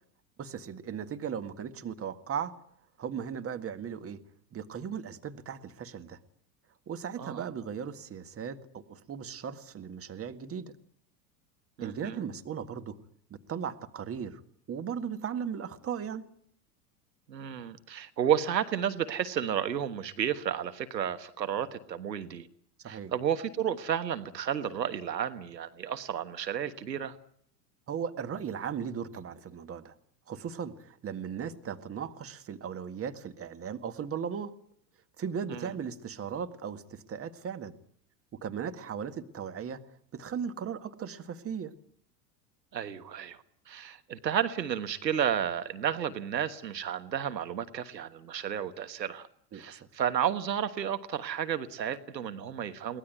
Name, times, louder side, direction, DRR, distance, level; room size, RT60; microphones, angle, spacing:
voice 1, 0.4-2.5 3.0-4.2 4.5-6.2 6.9-10.7 11.8-13.0 13.3-14.4 14.7-16.2 22.8-23.1 27.9-29.9 30.3-34.5 35.2-37.7 38.4-39.8 40.1-41.7 49.5-49.9, right 7 dB, 30° right, 10 dB, 1.8 m, -37 dB
voice 2, 11.8-12.3 17.3-22.5 22.9-27.1 35.5-35.7 42.7-43.4 43.7-49.3 49.5-53.0, right 9 dB, 85° right, 11 dB, 1.5 m, -32 dB
23.0 x 18.5 x 9.3 m, 0.66 s
hypercardioid pair, 90°, 49 cm